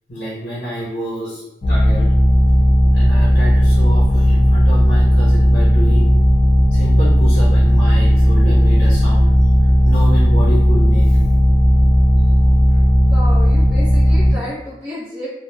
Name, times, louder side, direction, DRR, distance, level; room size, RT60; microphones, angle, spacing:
voice 1, 0.1-2.1 2.9-6.1 6.7-9.3 9.8-11.2, equal, 55° left, -8 dB, 0.9 m, -28 dB
sound 1, 1.6-14.3, equal, 35° left, 0.4 m, -13 dB
voice 2, 13.1-15.3, left 1 dB, 15° right, -12 dB, 0.8 m, -31 dB
2.3 x 2.2 x 3.2 m, 0.89 s
head